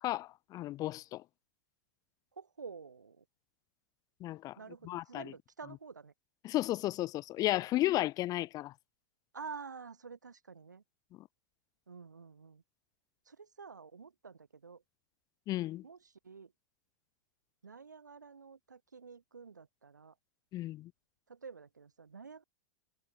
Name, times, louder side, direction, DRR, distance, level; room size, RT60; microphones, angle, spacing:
voice 1, 0.0-1.2 4.2-4.6 4.8-5.3 6.4-8.7 11.2-11.3 15.5-15.8 20.5-20.9, left 15 dB, 40° left, 2.3 m, -34 dB
voice 2, 2.4-3.2 4.6-6.1 9.3-10.8 11.9-12.6 13.3-14.8 15.8-16.0 16.2-16.5 17.6-20.1 21.3-22.4, right 5 dB, 90° right, 7.6 m, -49 dB
hypercardioid pair, 95°, 9 cm